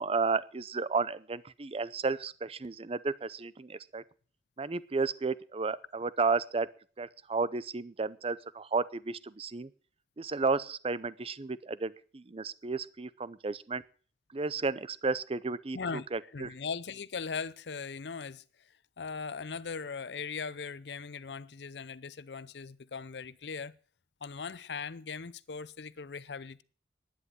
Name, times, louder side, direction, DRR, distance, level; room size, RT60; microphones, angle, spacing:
voice 1, 0.0-4.0 4.6-6.7 7.0-9.7 10.2-13.8 14.3-16.5, right 4 dB, 35° right, 0.6 m, -33 dB
voice 2, 15.7-16.1 16.3-23.7 24.2-26.6, left 5 dB, 75° left, 0.6 m, -39 dB
11.0 x 9.7 x 7.7 m
head